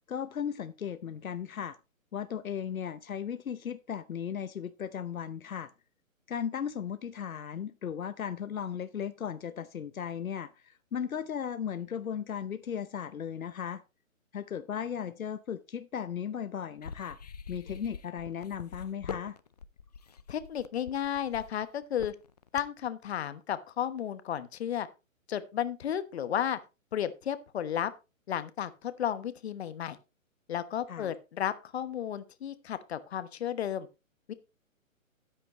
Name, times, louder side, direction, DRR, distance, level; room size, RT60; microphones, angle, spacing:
voice 1, 0.1-1.8 2.1-5.7 6.3-13.8 14.3-17.2 17.5-19.4 30.9-31.1, left 8 dB, 75° left, 0.8 m, -36 dB
sound 1, 16.8-22.9, left 6 dB, 30° left, 0.4 m, -44 dB
voice 2, 20.3-22.1 22.5-24.9 25.3-26.6 26.9-27.9 28.3-30.0 30.5-33.9 34.3-34.4, left 9 dB, 50° left, 1.1 m, -33 dB
13.5 x 9.3 x 3.0 m
hypercardioid pair, 140°, 41 cm